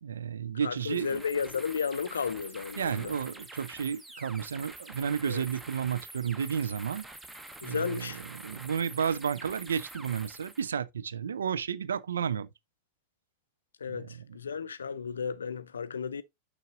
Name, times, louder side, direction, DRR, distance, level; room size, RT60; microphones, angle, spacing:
voice 1, 0.0-1.2 2.8-7.0 7.6-12.5 13.9-14.4, right 7 dB, 70° right, 0.3 m, -32 dB
voice 2, 0.6-3.1 5.3-5.4 7.6-8.2 13.8-16.2, left 6 dB, 70° left, 0.4 m, -33 dB
sound 1, 0.8-10.7, right 2 dB, 10° right, 0.8 m, -47 dB
6.4 x 6.2 x 2.5 m
figure-of-eight pair, 90°, 0 cm